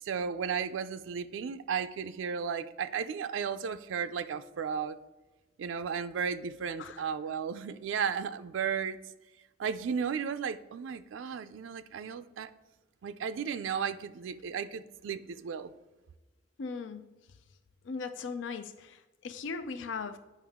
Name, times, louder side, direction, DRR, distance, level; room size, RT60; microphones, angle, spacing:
voice 1, 0.0-5.0 5.6-9.0 9.6-12.5 13.0-15.7, right 6 dB, 90° right, 11 dB, 0.4 m, -34 dB
voice 2, 16.6-17.2 17.8-20.2, left 5 dB, 75° left, 10 dB, 0.4 m, -38 dB
8.5 x 5.5 x 3.6 m, 1.1 s
head